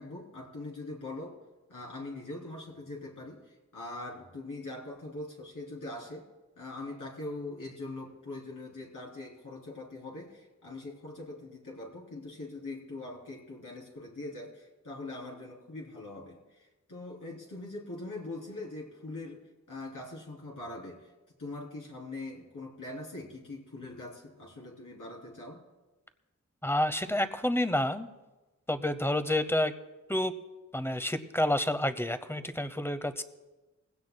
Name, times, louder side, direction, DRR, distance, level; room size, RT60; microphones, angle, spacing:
voice 1, 0.0-1.4 1.7-6.3 6.6-21.1 21.4-25.6, left 2 dB, 80° left, -3 dB, 3.6 m, -42 dB
voice 2, 26.6-28.1 28.7-29.7 30.1-30.3 30.7-33.2, left 1 dB, 10° left, 11 dB, 0.8 m, -29 dB
20.0 x 16.5 x 2.2 m, 1.1 s
cardioid pair, 55°, 31 cm